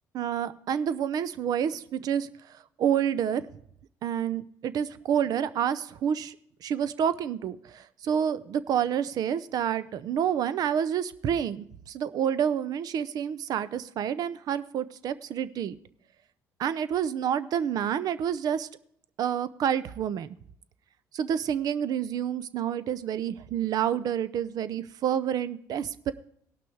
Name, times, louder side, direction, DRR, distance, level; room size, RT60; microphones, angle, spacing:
voice 1, 0.1-2.3 2.8-3.4 4.0-6.4 6.6-15.8 16.6-18.7 19.2-20.3 21.1-26.1, right 9 dB, 60° right, 14 dB, 0.6 m, -28 dB
17.5 x 6.0 x 4.6 m, 0.68 s
supercardioid pair, 85°, 7 cm